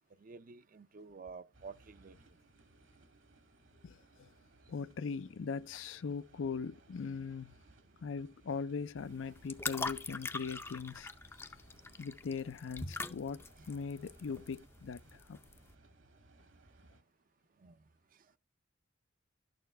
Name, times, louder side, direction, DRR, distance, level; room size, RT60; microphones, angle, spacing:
voice 1, 0.2-2.1 17.6-17.7, right 5 dB, 45° right, 0.5 m, -50 dB
sound 1, 1.5-17.0, right 2 dB, 70° right, 1.6 m, -63 dB
voice 2, 3.8-4.3 4.7-7.6 8.0-11.1 12.0-15.4, left 5 dB, 75° left, 0.4 m, -40 dB
sound 2, 9.0-15.7, left 3 dB, 10° left, 0.5 m, -43 dB
11.5 x 6.7 x 3.3 m
head